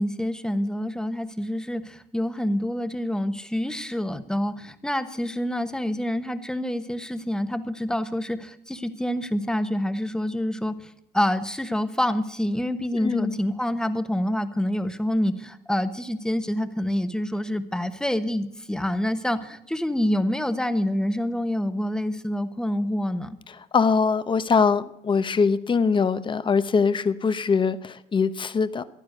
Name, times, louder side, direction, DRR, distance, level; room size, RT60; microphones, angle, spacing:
voice 1, 0.0-23.4, left 1 dB, 5° left, 10 dB, 1.1 m, -27 dB
voice 2, 13.0-13.4 23.7-28.8, left 5 dB, 30° left, 13 dB, 0.9 m, -22 dB
15.0 x 11.0 x 6.6 m, 0.77 s
cardioid pair, 110°, 17 cm